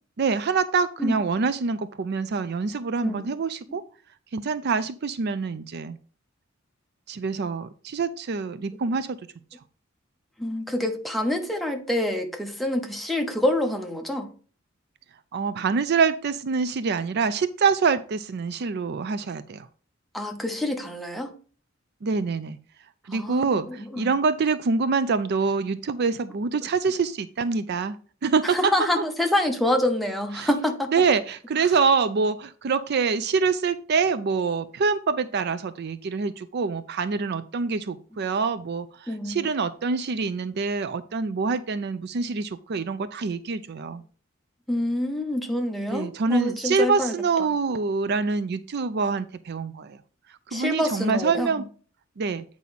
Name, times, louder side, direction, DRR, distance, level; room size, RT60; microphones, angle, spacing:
voice 1, 0.2-3.8 4.3-6.0 7.1-9.2 15.3-19.7 22.0-22.6 23.1-28.0 28.2-28.7 30.3-30.5 30.9-44.0 45.9-50.0 50.5-51.6 52.2-52.4, right 4 dB, 55° right, 0.4 m, -25 dB
voice 2, 3.0-3.3 3.7-3.8 10.4-14.3 20.1-21.3 23.1-24.1 28.4-30.9 39.1-39.4 44.7-47.1 47.4-47.5 50.5-51.6, left 1 dB, ahead, 0.9 m, -27 dB
8.4 x 4.7 x 4.1 m
head